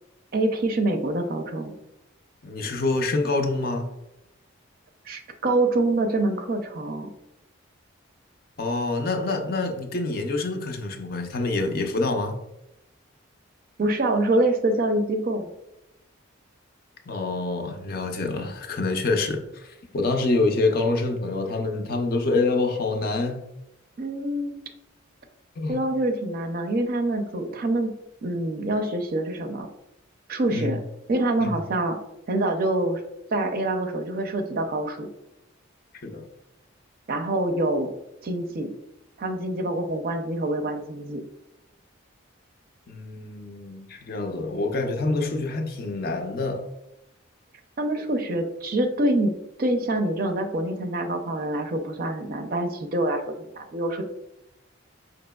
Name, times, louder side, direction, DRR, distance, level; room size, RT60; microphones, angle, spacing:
voice 1, 0.3-1.7 5.1-7.1 13.8-15.5 24.0-24.6 25.7-27.9 28.2-29.7 30.3-30.8 31.1-32.0 32.3-33.0 33.3-35.1 37.1-37.9 38.2-38.7 39.2-41.2 47.8-54.0, right 1 dB, 45° right, 5 dB, 0.4 m, -25 dB
voice 2, 2.4-3.9 8.6-12.4 17.1-23.4 25.6-25.8 30.5-30.8 31.4-31.5 36.0-36.3 42.9-46.6, left 3 dB, 45° left, 3 dB, 0.5 m, -26 dB
5.1 x 2.8 x 2.2 m, 0.89 s
head